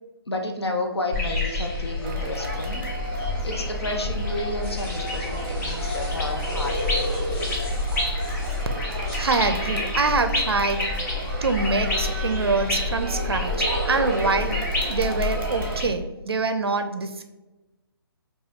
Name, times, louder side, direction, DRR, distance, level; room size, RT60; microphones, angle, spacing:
voice 1, 0.3-7.5, left 1 dB, 85° left, 2 dB, 0.7 m, -32 dB
sound 1, 1.1-15.9, left 2 dB, 40° left, 1.3 m, -28 dB
Crowd, 2.0-15.8, right 3 dB, 30° right, 0.6 m, -36 dB
sound 2, 4.5-9.3, left 1 dB, 20° left, 1.3 m, -43 dB
voice 2, 9.2-10.9 11.4-17.2, right 4 dB, 70° right, 8 dB, 0.4 m, -25 dB
4.8 x 2.3 x 3.1 m, 1.1 s
figure-of-eight pair, 140°, 13 cm